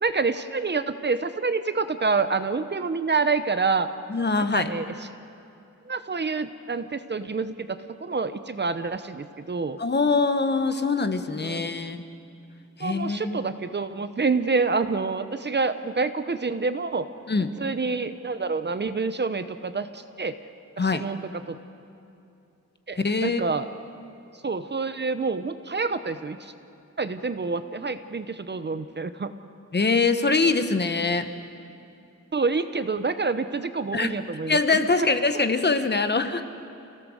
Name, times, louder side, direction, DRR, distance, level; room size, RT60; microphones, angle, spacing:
voice 1, 0.0-3.9 4.4-4.9 5.9-9.8 11.4-11.7 12.8-17.0 17.6-20.4 20.8-21.6 22.9-23.7 24.4-26.5 27.0-29.3 32.3-35.1 35.3-35.5, right 4 dB, 35° right, 10 dB, 0.8 m, -27 dB
voice 2, 4.1-4.7 9.8-12.0 12.8-13.4 17.3-17.5 20.8-21.0 23.0-23.4 29.7-31.3 33.9-34.1 34.5-36.4, left 4 dB, 35° left, 9 dB, 1.1 m, -23 dB
29.5 x 17.0 x 6.5 m, 2.7 s
wide cardioid pair, 120°, 30 cm